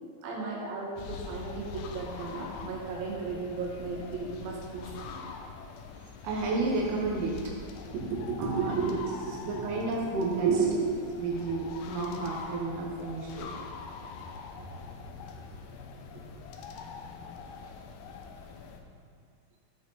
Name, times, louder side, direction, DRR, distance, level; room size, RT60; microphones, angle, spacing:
voice 1, 0.2-5.2 7.9-8.9 9.6-9.7 10.4-11.0, right 5 dB, 70° right, -3 dB, 3.3 m, -33 dB
sound 1, 1.0-18.8, left 5 dB, 85° left, 2.6 m, -43 dB
voice 2, 6.2-7.4 8.4-8.7 9.4-10.5 11.2-13.5, right 3 dB, 85° right, -2 dB, 3.1 m, -31 dB
14.5 x 6.3 x 4.0 m, 2.2 s
omnidirectional pair, 4.4 m